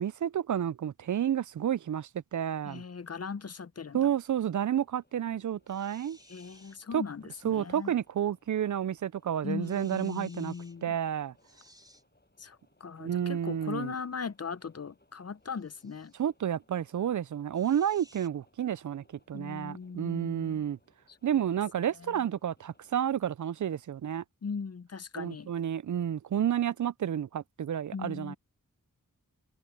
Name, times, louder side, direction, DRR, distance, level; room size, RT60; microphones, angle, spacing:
voice 1, 0.0-2.8 3.9-6.2 6.9-7.0 7.4-10.5 10.8-11.3 13.0-13.9 16.2-20.8 21.2-24.2 25.2-28.4, right 9 dB, 60° right, 0.5 m, -30 dB
voice 2, 2.6-4.0 6.3-7.9 9.4-11.0 12.4-16.1 19.3-20.6 21.1-21.4 22.0-22.2 24.4-25.5 27.9-28.4, left 5 dB, 45° left, 0.7 m, -39 dB
sound 1, 4.4-23.1, left 2 dB, 30° left, 7.3 m, -69 dB
sound 2, 5.7-6.8 7.6-7.9 9.6-10.8 11.4-12.0 15.5-16.2 17.5-18.3, equal, 10° right, 4.1 m, -59 dB
cardioid pair, 45°, 34 cm